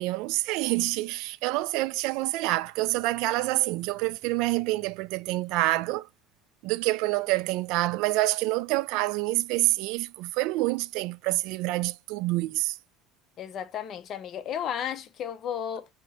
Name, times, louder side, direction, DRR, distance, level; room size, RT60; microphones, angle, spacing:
voice 1, 0.0-6.1 6.6-12.8, right 19 dB, 75° right, 0.4 m, -27 dB
voice 2, 13.4-15.9, left 9 dB, 50° left, 0.7 m, -33 dB
4.2 x 2.9 x 4.1 m
supercardioid pair, 105°, 0 cm